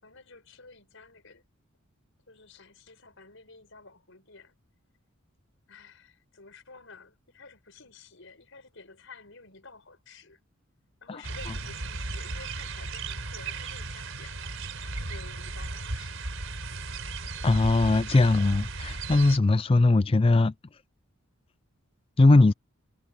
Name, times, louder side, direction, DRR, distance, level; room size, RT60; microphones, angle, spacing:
voice 1, 0.0-1.4 2.3-4.5 5.7-10.4 11.0-16.2, left 4 dB, 65° left, 6.0 m, -51 dB
sound 1, 11.2-19.4, right 3 dB, 70° right, 4.5 m, -36 dB
voice 2, 17.4-20.5 22.2-22.5, left 2 dB, 25° left, 0.4 m, -20 dB
head